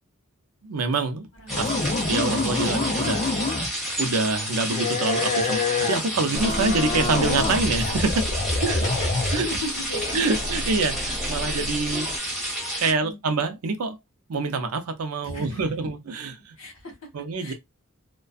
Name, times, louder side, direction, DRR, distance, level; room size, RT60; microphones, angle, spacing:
voice 1, 0.6-1.3 1.6-1.7 2.1-3.3 4.0-8.3 8.6-8.8 9.3-9.5 10.1-12.1 12.8-14.0 14.3-16.6 17.1-17.5, right 3 dB, 85° right, 0.5 m, -26 dB
voice 2, 1.4-2.2 8.7-10.4 12.2-12.5 12.8-13.2 15.2-15.6 16.6-16.9 17.4-17.5, left 1 dB, 65° left, 1.2 m, -37 dB
sound 1, 1.5-3.9 4.7-9.7, left 3 dB, 35° left, 0.5 m, -27 dB
sound 2, 1.5-12.9, equal, ahead, 1.3 m, -30 dB
sound 3, 6.3-12.2, equal, 20° right, 0.6 m, -34 dB
2.5 x 2.2 x 2.3 m
head